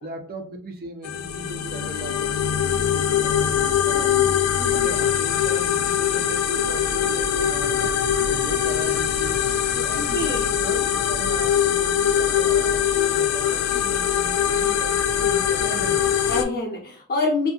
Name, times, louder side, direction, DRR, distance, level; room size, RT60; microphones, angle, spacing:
voice 1, 0.0-4.4 4.7-7.9 8.2-9.4 9.7-16.1, right 2 dB, 40° right, 5 dB, 0.5 m, -37 dB
sound 1, 1.0-16.4, left 9 dB, 85° left, 0.3 m, -22 dB
voice 2, 9.9-10.6 16.3-17.5, left 2 dB, 45° left, -2 dB, 0.6 m, -26 dB
2.6 x 2.5 x 2.3 m, 0.43 s
head